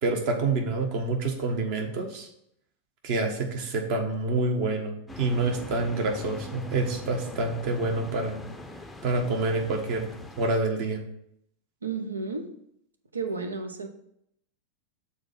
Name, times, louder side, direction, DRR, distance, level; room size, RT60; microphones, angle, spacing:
voice 1, 0.0-2.3 3.0-8.4 9.0-10.1 10.4-11.0, right 3 dB, 45° right, 3 dB, 1.4 m, -27 dB
sound 1, 5.1-10.6, left 2 dB, 5° left, 0.6 m, -42 dB
voice 2, 11.8-12.5 13.1-13.9, right 4 dB, 75° right, 5 dB, 0.9 m, -32 dB
6.6 x 4.3 x 5.7 m, 0.74 s
figure-of-eight pair, 90°, 0 cm